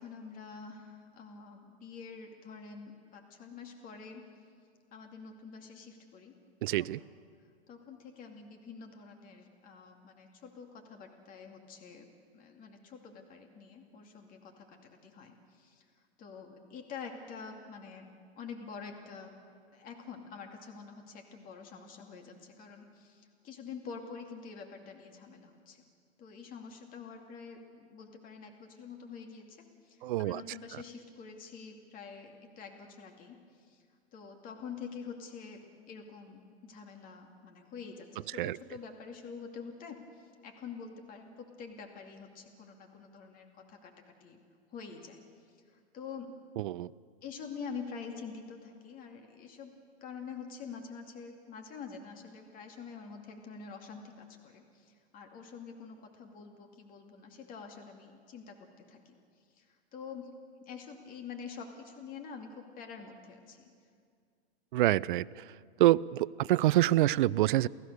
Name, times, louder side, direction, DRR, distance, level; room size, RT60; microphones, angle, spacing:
voice 1, 0.0-4.3 4.9-6.3 6.8-7.1 7.7-12.1 12.3-15.8 16.2-18.1 18.4-19.3 19.7-25.8 26.2-33.8 34.1-43.9 44.2-44.4 44.7-45.2 45.7-46.3 47.2-49.7 50.0-59.2 59.5-60.3 60.6-63.6, left 5 dB, 25° left, 3 dB, 2.4 m, -47 dB
voice 2, 6.6-7.0 30.0-30.4 38.4-38.6 46.6-46.9 64.7-65.2 65.8-67.7, right 15 dB, 50° right, 20 dB, 0.5 m, -26 dB
28.5 x 16.5 x 6.7 m, 2.2 s
hypercardioid pair, 135°, 33 cm